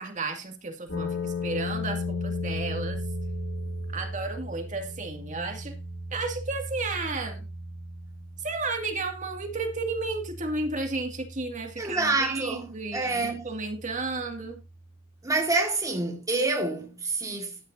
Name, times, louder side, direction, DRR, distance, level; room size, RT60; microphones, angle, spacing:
voice 1, 0.0-3.0 3.9-5.8 6.1-7.5 8.4-14.6, right 3 dB, 40° right, 2.2 m, -33 dB
sound 1, 0.9-14.9, left 2 dB, 85° left, 3.0 m, -36 dB
voice 2, 11.8-13.5 15.2-17.6, right 3 dB, 15° right, 1.8 m, -27 dB
13.5 x 10.0 x 2.7 m
head